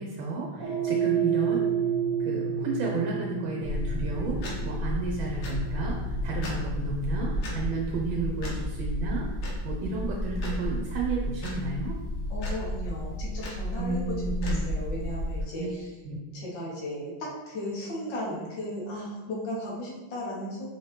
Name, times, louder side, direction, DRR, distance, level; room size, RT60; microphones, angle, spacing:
voice 1, 0.0-1.7 2.2-6.0 6.2-12.0 13.8-14.7 15.6-15.7 16.0-16.2, right 3 dB, 80° right, -2 dB, 1.4 m, -32 dB
sound 1, 0.6-9.0, right 7 dB, 45° right, 1.6 m, -31 dB
sound 2, 3.6-15.4, left 1 dB, 85° left, 1.7 m, -32 dB
voice 2, 12.3-15.9 16.3-20.7, left 1 dB, 70° left, -5 dB, 1.7 m, -36 dB
5.0 x 2.8 x 3.2 m, 1.2 s
omnidirectional pair, 2.1 m